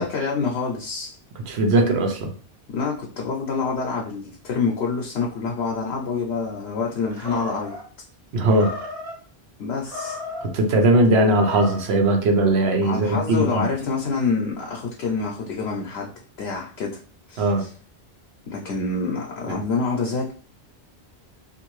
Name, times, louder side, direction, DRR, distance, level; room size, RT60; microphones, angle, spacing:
voice 1, 0.0-1.5 2.7-7.7 9.6-10.2 12.8-16.1 16.4-17.0 17.3-17.7 18.5-20.3, left 4 dB, 75° left, -1 dB, 0.9 m, -27 dB
voice 2, 1.5-2.3 8.3-8.7 10.4-13.6 17.4-17.6 19.5-19.6, right 2 dB, 75° right, 4 dB, 0.9 m, -19 dB
Animal, 7.1-7.8 8.5-9.2 9.8-10.5 11.2-11.9, left 2 dB, 35° right, 1.0 m, -34 dB
2.6 x 2.6 x 3.0 m, 0.41 s
omnidirectional pair, 1.1 m